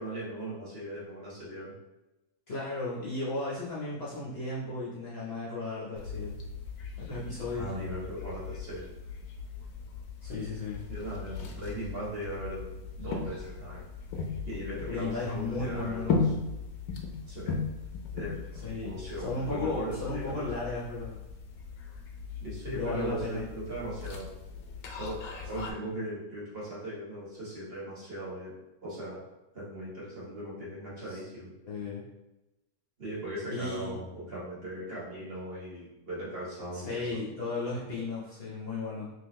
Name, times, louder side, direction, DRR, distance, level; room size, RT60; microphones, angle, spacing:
voice 1, 0.0-1.7 7.5-8.9 10.9-12.6 13.0-13.8 14.4-16.3 17.3-17.6 18.1-18.4 18.8-20.3 22.4-24.3 25.0-28.5 28.8-29.2 29.5-31.5 33.0-37.2, right 1 dB, 40° right, -7 dB, 1.5 m, -38 dB
voice 2, 2.5-6.4 7.0-7.7 10.2-10.8 14.9-16.2 18.6-21.2 22.7-23.4 25.6-25.7 25.9-26.0 31.1-31.2 31.6-32.0 33.5-34.0 36.7-39.1, left 3 dB, 45° left, -7 dB, 1.0 m, -35 dB
sound 1, 6.0-25.7, left 5 dB, 75° left, 1.1 m, -38 dB
3.8 x 3.0 x 3.1 m, 1.0 s
omnidirectional pair, 1.7 m